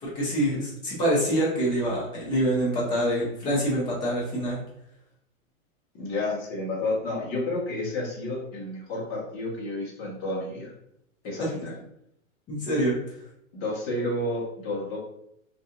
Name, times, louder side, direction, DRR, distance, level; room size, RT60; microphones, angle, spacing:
voice 1, 0.0-4.6 11.4-11.5 12.5-12.9, equal, 10° left, -6 dB, 0.4 m, -25 dB
voice 2, 6.0-10.7 11.2-11.8 13.5-15.0, left 2 dB, 30° left, -4 dB, 1.0 m, -31 dB
2.7 x 2.5 x 2.4 m, 0.74 s
hypercardioid pair, 140°, 41 cm